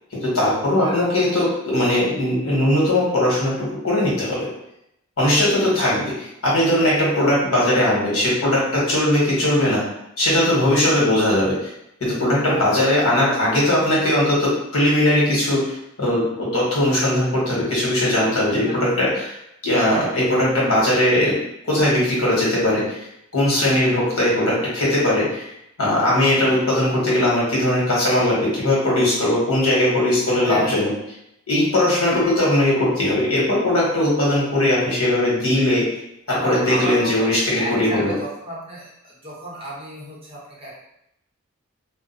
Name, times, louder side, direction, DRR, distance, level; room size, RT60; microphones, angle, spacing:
voice 1, 0.1-3.5 3.8-4.4 5.2-6.0 6.4-9.8 10.2-11.5 12.0-19.3 19.6-21.4 21.7-23.0 23.3-25.5 25.8-30.9 31.5-35.9 36.3-38.1, left 1 dB, 75° left, -6 dB, 1.3 m, -19 dB
voice 2, 30.4-30.8 36.3-40.7, right 1 dB, 25° right, -6 dB, 0.9 m, -33 dB
Plucked string instrument, 32.1-34.9, left 1 dB, 45° left, 0.6 m, -38 dB
2.5 x 2.2 x 4.0 m, 0.80 s
head